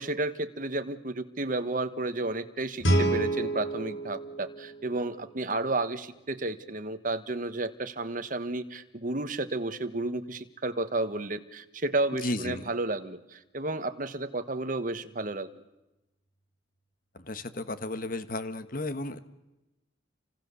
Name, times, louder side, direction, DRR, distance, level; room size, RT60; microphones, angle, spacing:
voice 1, 0.0-15.6, right 2 dB, 45° right, 9 dB, 1.3 m, -32 dB
Guitar, 2.8-5.6, right 1 dB, 75° left, 3.5 m, -29 dB
voice 2, 12.1-12.7 17.1-19.2, left 2 dB, 45° left, 11 dB, 1.3 m, -34 dB
29.0 x 25.5 x 7.0 m, 1.0 s
head